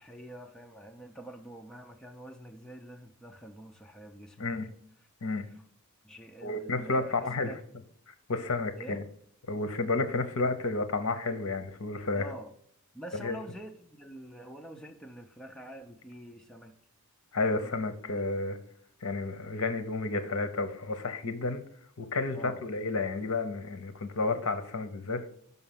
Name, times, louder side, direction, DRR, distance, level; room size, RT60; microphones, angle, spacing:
voice 1, 0.0-4.5 5.5-5.6 6.0-7.6 8.8-9.0 12.2-12.5 12.9-16.8 17.5-17.8 22.3-22.6, right 1 dB, 5° left, 0.5 m, -46 dB
voice 2, 4.4-4.7 5.2-5.5 6.4-7.5 8.1-9.0 9.5-12.3 13.2-13.4 17.3-18.6 19.0-21.6 22.0-25.2, left 3 dB, 65° left, 0.8 m, -31 dB
5.7 x 5.5 x 5.7 m
head